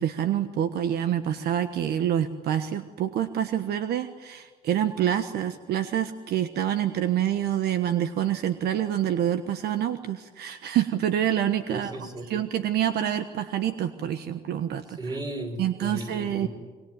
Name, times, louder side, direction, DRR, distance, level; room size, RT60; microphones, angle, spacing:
voice 1, 0.0-11.9 12.3-15.0 15.6-16.5, right 10 dB, 70° right, 10 dB, 1.3 m, -27 dB
voice 2, 11.7-12.3 14.9-16.5, right 1 dB, 25° right, 5 dB, 5.7 m, -35 dB
25.5 x 23.0 x 9.3 m, 1.4 s
cardioid pair, 110°, 17 cm